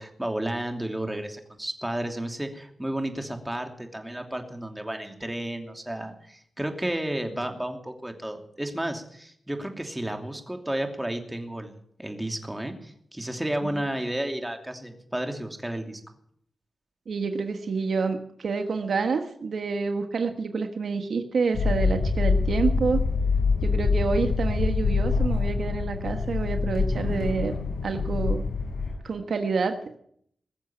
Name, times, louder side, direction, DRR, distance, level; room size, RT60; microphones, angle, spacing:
voice 1, 0.0-11.7 12.0-16.0, right 1 dB, 10° right, 4 dB, 2.8 m, -32 dB
voice 2, 17.1-23.0 23.6-27.5 27.8-28.5 29.0-30.0, right 4 dB, 75° right, 6 dB, 1.4 m, -28 dB
sound 1, 21.5-28.9, left 4 dB, 90° left, 6.1 m, -25 dB
21.0 x 7.2 x 9.0 m, 0.67 s
cardioid pair, 70°, 0 cm